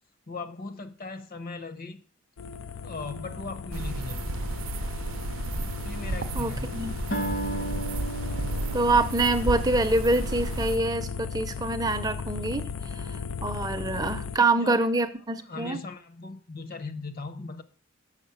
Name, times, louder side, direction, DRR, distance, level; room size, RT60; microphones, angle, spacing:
voice 1, 0.3-2.0 2.8-4.2 5.8-6.8 14.3-14.9 15.4-17.6, left 3 dB, 45° left, 0.9 m, -38 dB
sound 1, 2.4-14.4, left 6 dB, 90° left, 0.5 m, -36 dB
sound 2, 3.7-10.8, right 3 dB, 90° right, 0.6 m, -33 dB
voice 2, 6.3-6.9 8.7-15.8, right 2 dB, 20° right, 0.6 m, -26 dB
Acoustic guitar, 7.1-11.6, right 1 dB, 65° left, 1.6 m, -36 dB
6.5 x 6.3 x 6.9 m
head